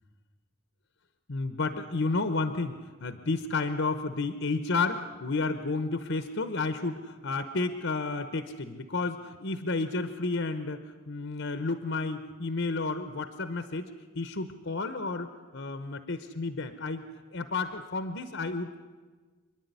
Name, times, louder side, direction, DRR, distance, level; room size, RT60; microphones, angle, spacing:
voice 1, 1.3-17.0 17.3-18.8, left 3 dB, 60° left, 10 dB, 1.0 m, -31 dB
27.0 x 10.5 x 9.5 m, 1.4 s
head